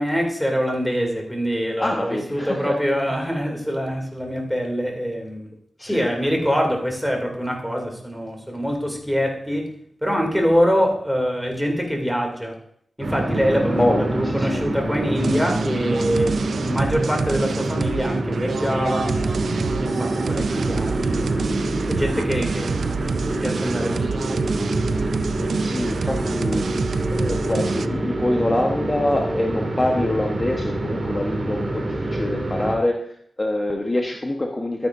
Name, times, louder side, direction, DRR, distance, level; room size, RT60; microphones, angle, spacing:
voice 1, 0.0-5.5 5.8-9.7 10.0-12.5 13.0-19.1 19.8-21.4 21.9-24.3 25.2-25.7, equal, ahead, 1 dB, 2.5 m, -24 dB
voice 2, 1.8-2.8 3.1-3.2 5.8-6.1 13.8-14.6 25.6-26.7 27.1-33.0 33.4-34.9, left 1 dB, 25° left, 1 dB, 1.1 m, -25 dB
sound 1, 13.0-32.7, right 1 dB, 45° right, 2.1 m, -26 dB
sound 2, 15.2-27.9, right 5 dB, 80° right, 0.3 m, -28 dB
13.0 x 9.3 x 2.6 m, 0.64 s
wide cardioid pair, 75°, 0 cm